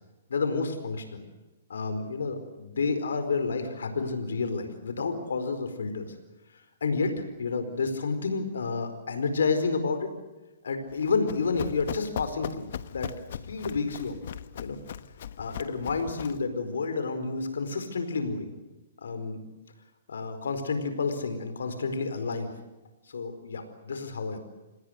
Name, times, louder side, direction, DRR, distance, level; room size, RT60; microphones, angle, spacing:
voice 1, 0.3-1.2 1.7-6.1 6.5-10.1 10.6-14.2 14.6-14.8 15.4-18.5 19.0-19.4 20.1-22.5 23.1-24.4, left 4 dB, 90° left, 9 dB, 4.7 m, -30 dB
Run, 10.9-16.5, left 9 dB, 60° left, 1.1 m, -39 dB
28.0 x 19.5 x 7.9 m, 1.1 s
hypercardioid pair, 150°, 0 cm